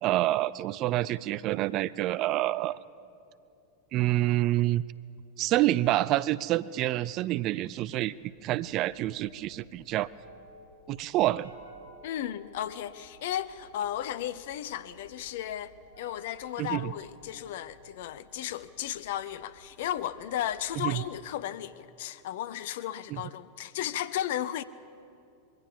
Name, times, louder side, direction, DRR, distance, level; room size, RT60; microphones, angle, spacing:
voice 1, 0.0-2.8 3.9-4.8 5.4-8.2 8.4-10.1 10.9-11.5 16.6-16.9 20.8-21.0 23.1-23.2, right 15 dB, 35° right, 0.4 m, -27 dB
sound 1, 8.2-21.4, right 1 dB, 85° right, 2.0 m, -56 dB
voice 2, 12.0-24.6, left 11 dB, 55° left, 0.6 m, -35 dB
21.5 x 17.0 x 7.2 m
figure-of-eight pair, 90°, 0 cm